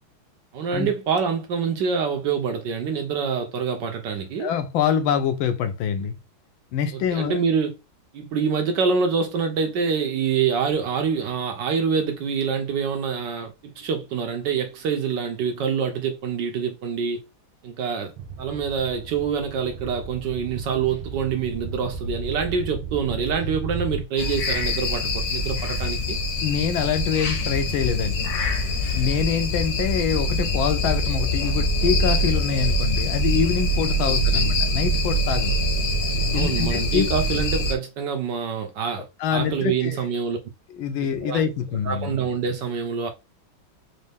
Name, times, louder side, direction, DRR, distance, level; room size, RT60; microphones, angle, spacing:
voice 1, 0.5-4.5 6.9-7.7 8.1-17.2 17.6-26.2 34.1-34.5 36.3-40.4 41.2-41.4 41.9-43.1, right 6 dB, 70° right, 1.3 m, -26 dB
voice 2, 4.4-6.1 6.7-7.4 26.4-28.3 28.9-35.6 36.3-37.1 39.2-40.0 40.8-42.1, left 7 dB, 80° left, 1.5 m, -25 dB
sound 1, 18.2-24.1, right 3 dB, 90° right, 1.6 m, -34 dB
sound 2, 24.2-37.7, left 1 dB, 60° left, 1.2 m, -24 dB
4.3 x 2.7 x 3.4 m
omnidirectional pair, 2.2 m